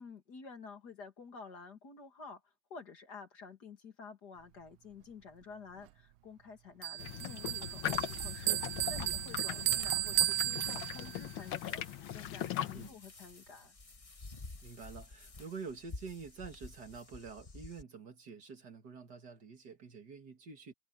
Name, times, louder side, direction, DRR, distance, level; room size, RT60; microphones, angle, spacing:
voice 1, 0.0-13.8, left 5 dB, 50° left, 2.6 m, -51 dB
Bell, 6.8-11.3, right 17 dB, 75° right, 1.3 m, -34 dB
sound 1, 7.0-12.9, left 10 dB, 70° left, 1.7 m, -40 dB
sound 2, 7.6-17.8, left 3 dB, 25° left, 0.7 m, -51 dB
voice 2, 9.5-9.8 12.7-13.0 14.6-20.7, right 5 dB, 50° right, 2.3 m, -47 dB
omnidirectional pair, 2.4 m